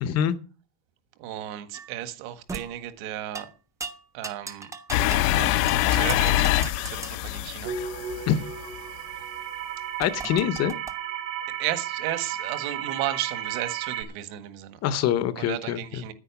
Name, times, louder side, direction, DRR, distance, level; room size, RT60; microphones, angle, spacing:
voice 1, 0.0-0.4 8.3-8.4 10.0-10.7 14.8-16.0, left 10 dB, 35° left, 0.8 m, -25 dB
voice 2, 1.2-3.5 4.1-4.7 5.3-7.7 11.6-14.8 15.4-16.1, right 13 dB, 55° right, 1.7 m, -34 dB
sound 1, 1.7-2.0 2.5-2.7 3.3-3.5 3.8-5.3 5.7-7.2 10.0-10.9, right 3 dB, 5° right, 0.6 m, -38 dB
sound 2, 4.9-8.8, left 14 dB, 80° left, 1.0 m, -24 dB
sound 3, 7.6-14.0, right 9 dB, 75° right, 3.8 m, -34 dB
9.9 x 9.7 x 7.0 m
cardioid pair, 165°, 46 cm